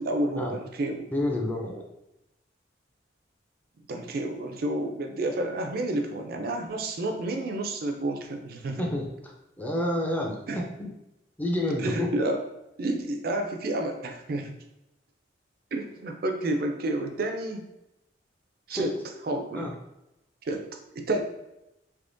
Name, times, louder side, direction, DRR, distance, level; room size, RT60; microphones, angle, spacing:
voice 1, 0.0-1.1 3.9-8.8 10.5-10.6 11.8-12.4 12.8-14.6 15.7-17.7 18.7-18.9 19.2-19.7 20.4-20.6 21.0-21.2, right 2 dB, 55° right, 4 dB, 0.4 m, -30 dB
voice 2, 1.1-1.8 8.8-10.9 11.4-12.1 18.7-18.9 19.5-19.7, left 1 dB, 10° left, 0 dB, 0.5 m, -29 dB
3.5 x 2.9 x 2.6 m, 0.90 s
head